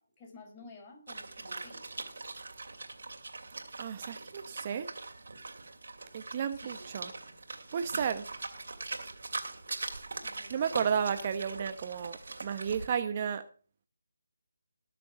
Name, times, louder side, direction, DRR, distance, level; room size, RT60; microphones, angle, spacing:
voice 1, 0.0-1.8 6.5-6.8 10.2-10.8, left 2 dB, 25° left, 1 dB, 5.0 m, -52 dB
sound 1, 1.1-12.9, right 3 dB, 65° right, 2.6 m, -42 dB
voice 2, 3.8-4.9 6.1-7.1 7.7-8.3 10.5-13.4, right 7 dB, 35° right, 9 dB, 0.9 m, -33 dB
20.0 x 7.0 x 5.8 m, 0.41 s
figure-of-eight pair, 155°, 0 cm